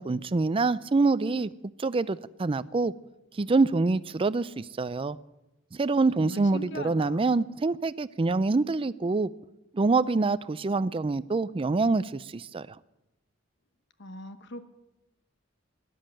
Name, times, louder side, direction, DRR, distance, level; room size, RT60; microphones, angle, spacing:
voice 1, 0.0-1.5 1.8-2.9 3.3-5.2 5.7-9.3 9.7-12.7, right 3 dB, 30° right, 17 dB, 0.4 m, -26 dB
voice 2, 6.2-7.3 14.0-14.6, left 1 dB, 60° left, 11 dB, 1.1 m, -40 dB
13.0 x 11.0 x 8.7 m, 0.96 s
head